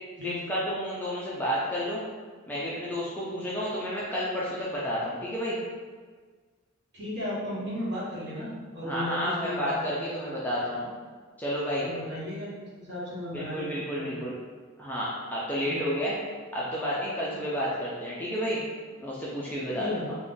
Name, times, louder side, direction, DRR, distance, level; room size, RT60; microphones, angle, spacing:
voice 1, 0.2-2.0 2.5-5.6 8.8-10.8 11.4-11.9 13.3-14.3 14.8-16.2 16.5-18.6 19.0-20.1, equal, 10° left, -7 dB, 0.4 m, -31 dB
voice 2, 6.9-10.3 10.8-10.9 11.8-14.2 15.6-15.8 19.8-20.2, left 1 dB, 50° right, -7 dB, 1.0 m, -35 dB
2.5 x 2.2 x 3.7 m, 1.5 s
head